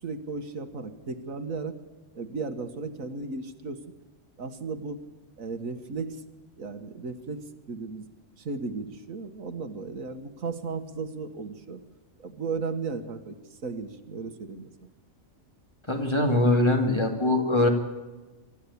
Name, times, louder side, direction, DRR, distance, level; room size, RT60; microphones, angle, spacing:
voice 1, 0.0-1.8 2.1-3.8 4.4-5.0 5.4-6.2 6.6-7.4 7.7-8.1 8.4-11.8 12.2-14.7, right 4 dB, 80° right, 8 dB, 1.8 m, -35 dB
voice 2, 15.9-17.7, left 1 dB, 20° left, 3 dB, 2.5 m, -22 dB
24.5 x 13.0 x 8.5 m, 1.2 s
omnidirectional pair, 1.4 m